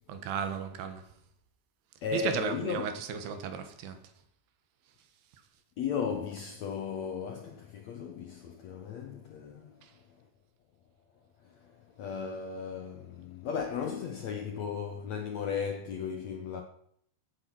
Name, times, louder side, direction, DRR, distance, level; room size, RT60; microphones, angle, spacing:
voice 1, 0.1-1.0 2.1-4.0 9.8-9.9, right 7 dB, 85° right, 3.5 m, -35 dB
voice 2, 2.0-2.9 5.8-9.8 11.4-16.6, left 6 dB, 70° left, 1.7 m, -36 dB
16.0 x 8.7 x 6.1 m
omnidirectional pair, 4.6 m